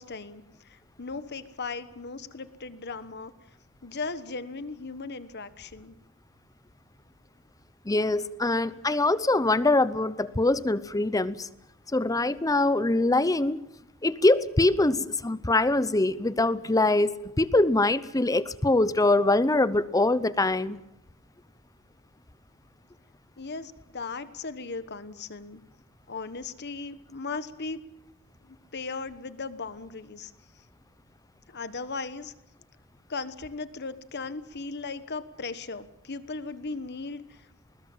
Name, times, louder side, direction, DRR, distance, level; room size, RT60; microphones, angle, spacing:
voice 1, 0.0-3.3 3.8-6.0 23.4-25.6 26.1-27.8 28.4-30.3 31.5-32.3 33.1-37.5, left 4 dB, 55° left, 13 dB, 1.3 m, -37 dB
voice 2, 7.9-11.5 11.9-13.6 14.0-20.8, left 2 dB, 15° left, 16 dB, 0.8 m, -23 dB
20.5 x 20.0 x 7.4 m, 0.87 s
head